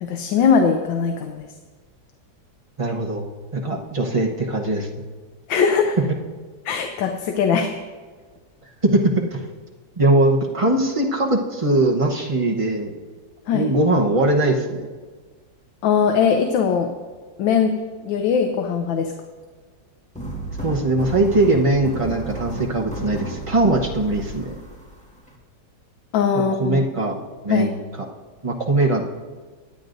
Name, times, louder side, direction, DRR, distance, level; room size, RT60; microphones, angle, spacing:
voice 1, 0.0-1.5 5.5-6.0 6.6-7.7 13.5-13.7 15.8-16.9 17.4-17.7 18.0-19.1 26.1-26.9 27.5-27.7, left 6 dB, 80° left, 5 dB, 1.5 m, -20 dB
voice 2, 2.8-3.2 3.5-5.0 8.8-9.4 10.0-12.9 13.5-14.9 20.6-24.5 26.3-27.1 27.4-27.7 28.4-29.0, right 2 dB, 30° right, 0 dB, 0.6 m, -20 dB
sound 1, 20.1-25.3, right 1 dB, 5° left, 1.3 m, -32 dB
23.5 x 9.4 x 2.6 m, 1.4 s
omnidirectional pair, 2.0 m